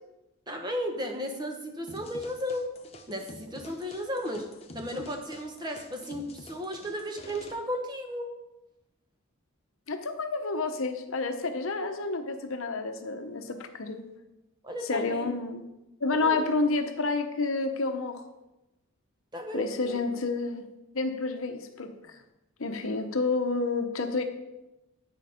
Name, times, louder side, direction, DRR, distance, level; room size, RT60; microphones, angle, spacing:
voice 1, 0.5-2.7 3.1-4.5 4.7-8.4 14.6-15.3 16.2-16.5 19.3-20.0, equal, 20° right, 3 dB, 1.0 m, -34 dB
sound 1, 1.9-7.5, left 2 dB, 30° left, 0.7 m, -48 dB
voice 2, 9.9-14.0 14.8-15.6 16.0-18.2 19.5-20.6 20.9-22.2 22.6-24.2, left 3 dB, 65° left, 6 dB, 0.8 m, -29 dB
8.4 x 6.5 x 5.1 m, 0.93 s
head